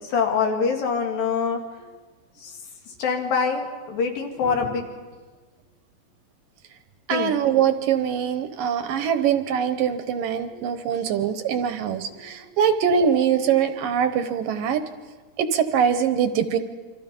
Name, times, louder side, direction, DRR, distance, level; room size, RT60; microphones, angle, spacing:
voice 1, 0.0-1.6 2.4-2.6 3.0-5.0 7.1-7.3 10.5-10.7, left 5 dB, 70° left, 2 dB, 3.8 m, -25 dB
voice 2, 7.1-14.8 15.4-16.6, right 8 dB, 75° right, 9 dB, 2.5 m, -23 dB
28.0 x 25.0 x 5.3 m, 1.4 s
omnidirectional pair, 4.3 m